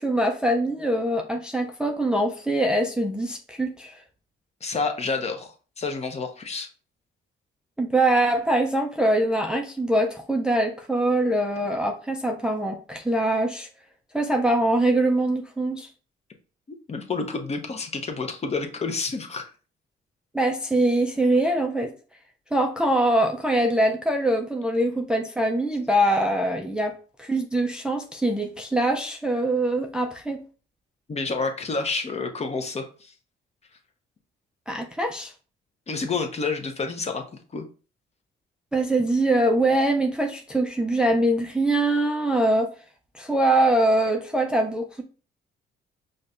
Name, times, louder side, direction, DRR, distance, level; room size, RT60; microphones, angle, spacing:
voice 1, 0.0-4.0 7.8-13.7 14.1-15.9 20.3-21.9 22.5-30.4 34.7-35.3 38.7-42.7 43.1-45.0, right 1 dB, 5° right, 3 dB, 0.4 m, -23 dB
voice 2, 4.6-6.7 16.9-19.5 31.1-33.1 35.9-37.7, left 4 dB, 35° left, 5 dB, 0.7 m, -29 dB
5.1 x 2.2 x 2.5 m, 0.37 s
cardioid pair, 90°, 20 cm